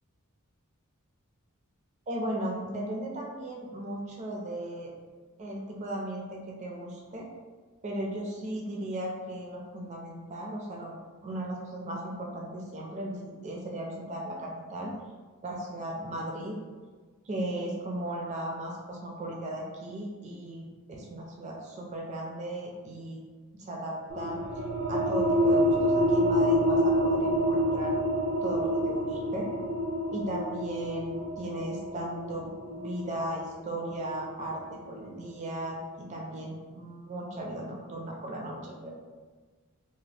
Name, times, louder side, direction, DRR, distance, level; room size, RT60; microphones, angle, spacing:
voice 1, 2.1-4.9 5.4-7.3 7.8-11.0 11.2-15.0 15.4-16.6 17.2-23.2 23.5-24.6 24.9-27.9 28.4-29.5 30.1-38.9, right 1 dB, 30° right, -1 dB, 0.4 m, -36 dB
sound 1, 24.1-35.3, equal, 80° right, 0.6 m, -28 dB
2.9 x 2.3 x 3.1 m, 1.4 s
head